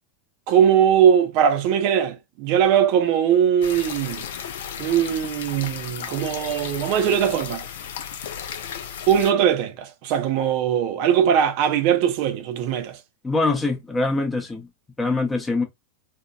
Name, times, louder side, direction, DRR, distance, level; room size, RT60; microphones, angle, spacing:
voice 1, 0.5-4.2 4.8-7.6 9.1-13.0, right 9 dB, 45° right, 0.5 m, -20 dB
sound 1, 3.6-9.3, left 8 dB, 55° left, 0.4 m, -34 dB
voice 2, 13.2-14.7 15.0-15.6, left 3 dB, 10° left, 0.7 m, -23 dB
2.8 x 2.2 x 2.2 m
figure-of-eight pair, 90°, 0 cm